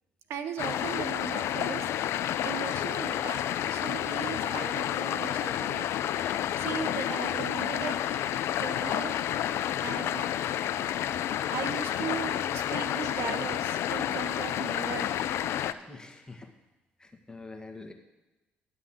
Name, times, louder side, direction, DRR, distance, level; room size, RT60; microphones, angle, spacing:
voice 1, 0.3-5.9 6.2-8.0 8.6-9.2 9.8-10.3 11.5-15.2, right 7 dB, 65° right, 9 dB, 0.8 m, -38 dB
sound 1, 0.6-15.7, left 11 dB, 65° left, 0.4 m, -30 dB
voice 2, 15.9-16.5 17.0-17.9, left 3 dB, 15° left, 5 dB, 1.8 m, -45 dB
11.0 x 5.7 x 7.5 m, 1.0 s
hypercardioid pair, 55°, 5 cm